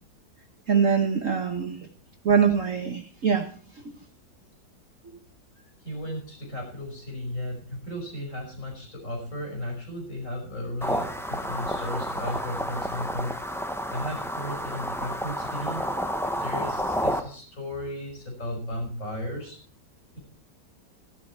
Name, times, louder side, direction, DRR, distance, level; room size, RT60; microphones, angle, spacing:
voice 1, 0.7-1.8 2.2-3.5, right 6 dB, 50° right, 4 dB, 1.4 m, -23 dB
voice 2, 5.6-15.8 16.3-19.6 20.1-20.2, left 1 dB, 40° left, 0 dB, 5.8 m, -35 dB
sound 1, 10.8-17.2, equal, ahead, 0.7 m, -30 dB
14.0 x 11.0 x 4.5 m, 0.42 s
omnidirectional pair, 2.0 m